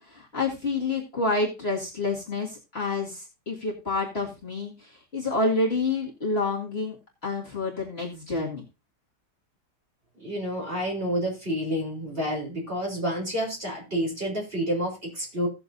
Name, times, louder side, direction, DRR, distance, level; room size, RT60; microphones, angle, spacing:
voice 1, 0.0-7.0 7.2-8.6, left 3 dB, 35° left, -4 dB, 2.2 m, -28 dB
voice 2, 10.2-15.5, equal, 30° right, -2 dB, 4.0 m, -29 dB
17.0 x 6.9 x 2.6 m, 0.27 s
omnidirectional pair, 1.8 m